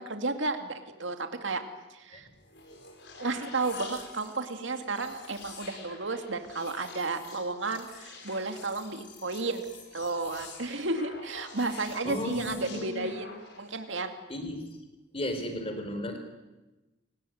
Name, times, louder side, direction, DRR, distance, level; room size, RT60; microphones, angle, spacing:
voice 1, 0.0-1.6 1.9-2.3 3.2-9.7 9.9-14.1, right 3 dB, 70° right, 6 dB, 2.3 m, -33 dB
sound 1, 2.3-13.8, left 4 dB, 55° left, 5.4 m, -48 dB
voice 2, 11.7-13.1 14.3-14.6 15.1-16.2, left 1 dB, 30° left, 7 dB, 4.2 m, -35 dB
29.0 x 18.5 x 9.3 m, 1.1 s
head